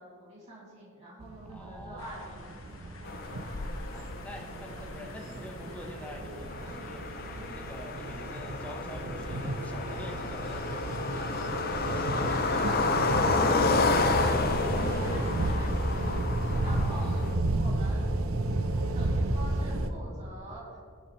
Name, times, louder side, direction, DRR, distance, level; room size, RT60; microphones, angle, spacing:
voice 1, 0.0-3.5 12.0-13.0 13.4-16.2 16.6-17.2 17.5-18.2 18.9-20.8, right 1 dB, 30° right, -7 dB, 2.7 m, -44 dB
sound 1, 1.2-19.9, right 2 dB, 80° right, 0.8 m, -32 dB
voice 2, 1.5-2.4 3.9-13.0 16.6-17.1, left 1 dB, 5° left, 1 dB, 1.0 m, -46 dB
sound 2, 2.0-15.6, left 3 dB, 70° left, 1.3 m, -51 dB
sound 3, 3.0-17.3, left 3 dB, 45° left, 0.6 m, -31 dB
18.5 x 7.1 x 3.3 m, 2.1 s
head